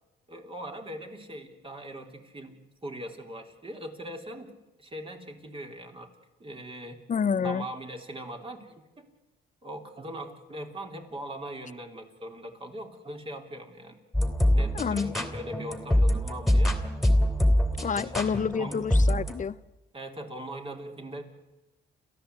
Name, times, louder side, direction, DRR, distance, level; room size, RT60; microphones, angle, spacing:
voice 1, 0.3-4.5 4.8-6.1 6.4-7.0 7.4-9.1 9.6-14.0 14.5-16.8 18.1-18.8 19.9-21.2, right 1 dB, 25° right, 4 dB, 3.6 m, -40 dB
voice 2, 7.1-7.7 14.7-15.1 17.8-19.6, left 6 dB, 40° left, 17 dB, 0.7 m, -28 dB
sound 1, 14.1-19.4, left 1 dB, ahead, 3.0 m, -24 dB
29.5 x 14.0 x 8.2 m, 1.0 s
cardioid pair, 90°, 20 cm